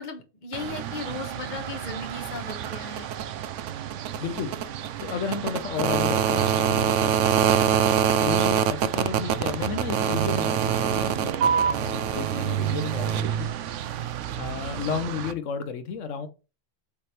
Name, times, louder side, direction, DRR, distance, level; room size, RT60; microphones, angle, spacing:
voice 1, 0.0-3.1 14.7-15.0, left 3 dB, 40° left, 1.2 m, -37 dB
sound 1, 0.5-15.3, right 9 dB, 75° right, 0.9 m, -26 dB
voice 2, 4.1-7.2 8.2-13.5 14.4-16.3, left 6 dB, 75° left, 1.1 m, -33 dB
8.5 x 3.4 x 4.3 m
omnidirectional pair, 1.3 m